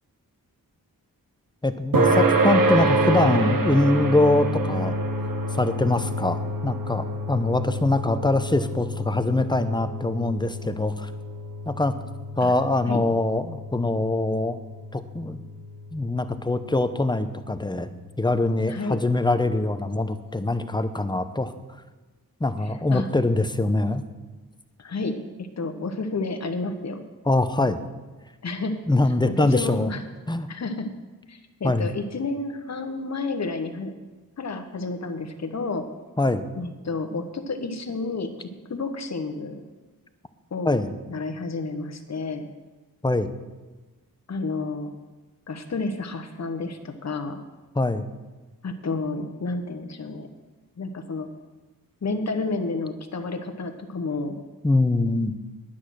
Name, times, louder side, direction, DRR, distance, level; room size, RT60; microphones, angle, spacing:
voice 1, 1.6-4.9 5.5-11.1 11.6-11.9 12.4-14.6 14.9-15.4 15.9-17.9 18.2-21.5 22.4-24.0 27.3-27.8 28.9-29.9 30.3-30.5 31.6-31.9 36.2-36.5 40.6-40.9 43.0-43.3 47.7-48.0 54.6-55.3, left 2 dB, 10° left, 10 dB, 0.8 m, -23 dB
sound 1, 1.9-16.8, right 1 dB, 65° right, 1.4 m, -27 dB
voice 2, 18.7-19.0 22.9-23.1 24.8-27.0 28.4-28.8 29.4-30.0 30.5-31.0 31.3-33.9 34.4-35.9 36.6-39.6 40.5-40.8 41.1-42.5 44.3-44.9 45.5-47.4 48.6-50.3 50.8-51.3 52.0-54.4, left 3 dB, 45° left, 6 dB, 1.2 m, -30 dB
9.8 x 8.6 x 6.3 m, 1.2 s
cardioid pair, 70°, 37 cm